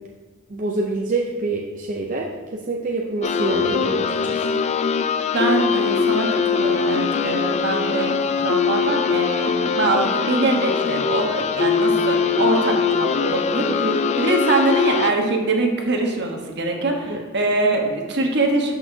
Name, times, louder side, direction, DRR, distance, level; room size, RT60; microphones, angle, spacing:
voice 1, 0.5-4.6 13.7-14.0 17.1-17.2, right 2 dB, 40° right, -1 dB, 0.6 m, -26 dB
sound 1, 3.2-15.1, left 6 dB, 35° left, 0.3 m, -22 dB
voice 2, 5.3-13.8 14.2-18.7, right 2 dB, 55° right, 2 dB, 1.1 m, -23 dB
11.5 x 5.7 x 2.7 m, 1.4 s
head